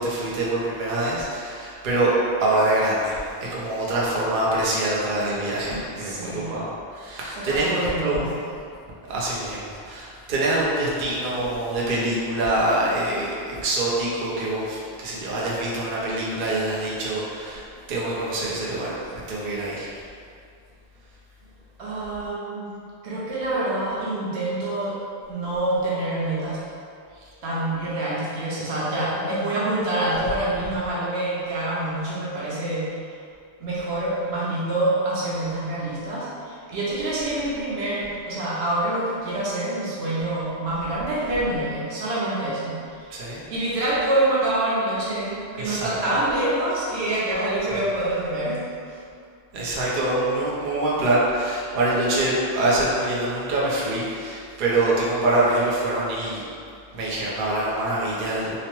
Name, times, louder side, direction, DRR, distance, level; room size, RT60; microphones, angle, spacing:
voice 1, 0.0-2.1 2.4-8.2 9.1-19.9 43.1-43.4 45.5-45.9 49.5-56.4 56.9-58.6, right 2 dB, 60° right, -6 dB, 0.7 m, -25 dB
voice 2, 5.9-6.5 7.4-8.3 21.8-22.7 23.0-25.0 25.3-26.6 27.4-32.9 33.6-43.1 43.5-48.6 48.9-49.0, right 1 dB, 85° right, -7 dB, 1.0 m, -26 dB
2.9 x 2.0 x 3.0 m, 2.4 s
omnidirectional pair, 1.1 m